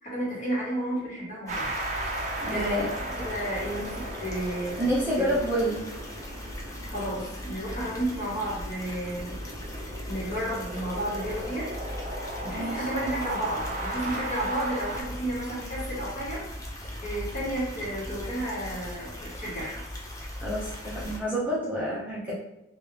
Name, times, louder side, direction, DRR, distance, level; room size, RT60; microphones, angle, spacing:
voice 1, 0.0-1.7 2.5-4.8 5.1-5.3 6.9-9.4 10.1-11.7 12.4-16.5 17.0-19.8, right 1 dB, 40° left, -6 dB, 1.4 m, -32 dB
sound 1, 1.5-21.2, left 1 dB, 15° left, 0.5 m, -39 dB
sound 2, 1.5-15.0, right 1 dB, 40° right, 0.5 m, -37 dB
voice 2, 2.4-2.9 4.8-5.8 12.5-12.9 20.4-22.3, equal, 10° right, -8 dB, 0.8 m, -28 dB
3.3 x 2.7 x 3.3 m, 0.92 s
head